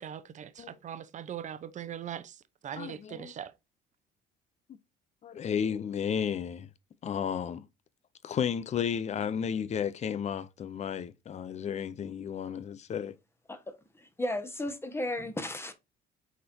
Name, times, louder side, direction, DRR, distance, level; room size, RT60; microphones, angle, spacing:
voice 1, 0.0-3.5, right 9 dB, 45° right, 0.9 m, -41 dB
voice 2, 2.8-3.3 5.2-6.7 7.0-7.7 8.2-13.1, left 8 dB, 40° left, 0.7 m, -33 dB
voice 3, 13.5-15.7, left 1 dB, 15° left, 1.4 m, -35 dB
8.2 x 4.4 x 2.8 m
cardioid pair, 110°, 17 cm